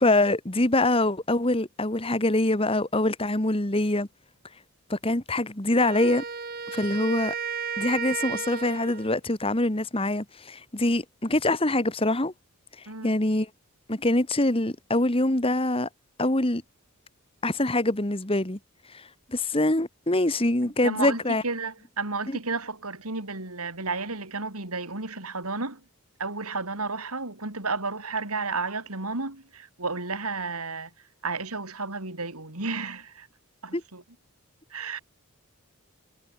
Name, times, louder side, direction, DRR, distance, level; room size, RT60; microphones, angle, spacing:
voice 1, 0.0-4.1 4.9-6.2 6.7-7.3 7.8-12.3 13.0-13.5 13.9-15.9 16.2-16.6 17.4-18.6 18.9-19.0 19.3-21.4 22.3-22.4 33.7-33.8, left 2 dB, 25° left, 1.7 m, -24 dB
Wind instrument woodwind instrument, 5.8-9.1, right 6 dB, 45° right, 1.8 m, -33 dB
voice 2, 20.6-25.8 26.2-30.9 31.2-33.3 33.6-34.0 34.7-35.0, right 3 dB, 80° right, 4.6 m, -32 dB
head